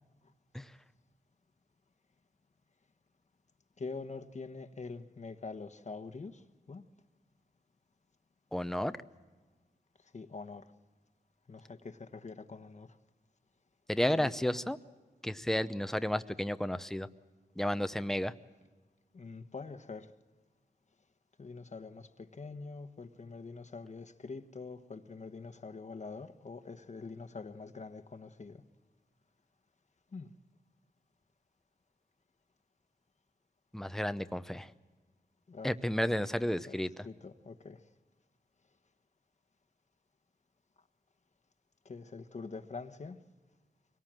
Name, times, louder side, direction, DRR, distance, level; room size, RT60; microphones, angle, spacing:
voice 1, 3.8-6.8 10.0-10.7 11.5-13.0 14.0-14.3 19.1-20.1 21.4-28.6 30.1-30.3 35.5-35.8 36.7-37.8 41.8-43.2, left 4 dB, 45° left, 8 dB, 1.2 m, -45 dB
voice 2, 8.5-8.9 13.9-14.8 15.2-17.1 17.6-18.3 33.7-34.7 35.6-36.9, left 1 dB, ahead, 12 dB, 0.7 m, -32 dB
24.5 x 18.5 x 7.5 m, 1.3 s
wide cardioid pair, 95°, 16 cm